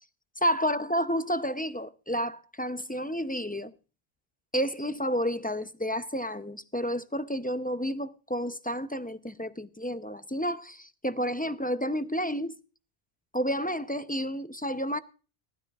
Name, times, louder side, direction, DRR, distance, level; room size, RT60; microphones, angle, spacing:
voice 1, 0.4-3.7 4.5-12.6 13.3-15.0, equal, 10° left, 0.5 m, -30 dB
19.5 x 13.0 x 2.4 m
omnidirectional pair, 1.1 m